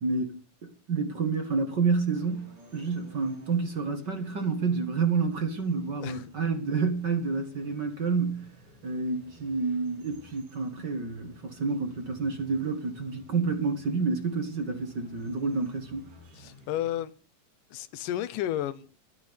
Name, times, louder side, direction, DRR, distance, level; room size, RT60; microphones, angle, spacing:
voice 1, 0.0-8.5 8.8-16.1, right 4 dB, 40° right, 2.0 m, -29 dB
sound 1, 2.1-17.0, right 1 dB, 80° right, 7.5 m, -55 dB
voice 2, 16.3-17.1 17.7-19.0, left 12 dB, 90° left, 2.5 m, -32 dB
12.5 x 12.5 x 8.0 m
omnidirectional pair, 3.7 m